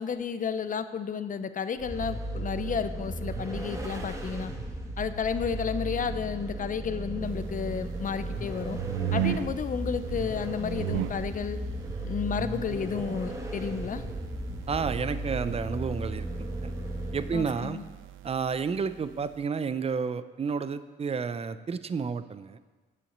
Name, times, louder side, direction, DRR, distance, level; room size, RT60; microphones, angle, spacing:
voice 1, 0.0-4.5 5.0-8.8 9.1-11.6 12.0-14.0 17.3-17.8, left 6 dB, 40° left, 11 dB, 0.7 m, -32 dB
Vehicle, 1.8-17.7, right 1 dB, 15° right, 2.1 m, -35 dB
sound 1, 7.2-19.4, right 11 dB, 85° right, 0.4 m, -38 dB
voice 2, 14.7-16.7 17.1-17.8 18.2-22.6, right 5 dB, 30° right, 13 dB, 0.6 m, -31 dB
8.5 x 7.0 x 8.0 m, 1.3 s
cardioid pair, 90°, 20 cm